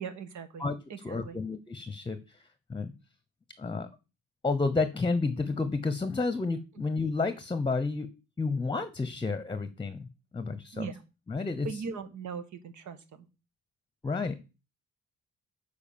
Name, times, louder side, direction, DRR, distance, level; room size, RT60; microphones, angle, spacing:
voice 1, 0.0-1.4 10.7-11.0 11.6-13.3, right 5 dB, 70° right, 10 dB, 1.5 m, -39 dB
voice 2, 1.0-2.9 3.6-3.9 4.4-8.1 8.4-10.1 10.3-10.9 11.3-11.7 14.0-14.4, left 3 dB, 15° left, 11 dB, 0.9 m, -31 dB
7.2 x 4.9 x 7.1 m, 0.30 s
cardioid pair, 90°, 30 cm